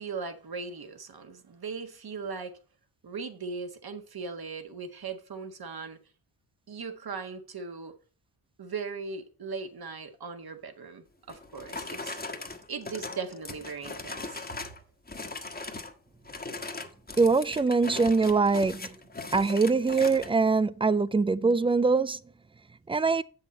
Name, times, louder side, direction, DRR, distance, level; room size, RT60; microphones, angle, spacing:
voice 1, 0.0-2.5 3.0-6.0 6.7-7.9 8.6-12.2 12.7-14.6, right 5 dB, 45° right, 1.6 m, -38 dB
sound 1, 11.3-14.8 15.1-15.9 16.2-20.3, left 3 dB, 20° left, 1.3 m, -39 dB
voice 2, 17.2-18.9 19.3-22.2 22.9-23.2, right 4 dB, 10° right, 0.3 m, -23 dB
7.5 x 6.5 x 4.2 m
supercardioid pair, 50°, 50 cm